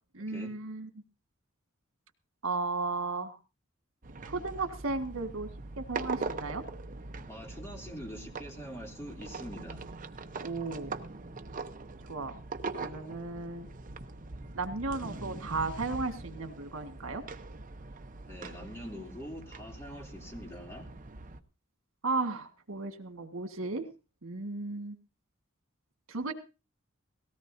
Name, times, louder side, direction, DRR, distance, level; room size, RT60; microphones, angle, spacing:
voice 1, 0.1-0.9 2.4-3.4 4.2-5.5 5.8-6.6 10.4-10.9 12.1-12.3 12.7-13.7 14.6-17.2 22.0-23.8 24.2-25.0 26.1-26.3, right 3 dB, 85° right, 6 dB, 1.8 m, -34 dB
sound 1, 4.0-21.4, right 3 dB, 40° right, 0.8 m, -42 dB
voice 2, 7.3-9.9 18.3-20.9, equal, 15° left, 0 dB, 3.0 m, -44 dB
18.5 x 17.0 x 2.7 m, 0.30 s
head